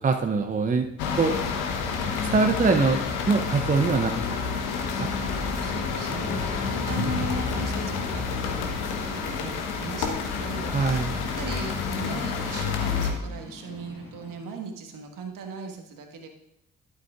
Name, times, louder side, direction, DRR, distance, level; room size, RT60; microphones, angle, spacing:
voice 1, 0.0-0.9 1.2-1.4 2.3-3.0 3.3-4.4 5.0-5.1 10.7-11.1, right 4 dB, 20° right, 5 dB, 0.6 m, -23 dB
sound 1, 1.0-13.1, left 5 dB, 65° left, 1.1 m, -29 dB
sound 2, 4.8-14.3, left 1 dB, 85° left, 3.3 m, -46 dB
voice 2, 5.3-16.3, right 4 dB, 50° right, 4 dB, 1.4 m, -38 dB
11.5 x 8.0 x 2.4 m, 0.84 s
figure-of-eight pair, 40°, 41 cm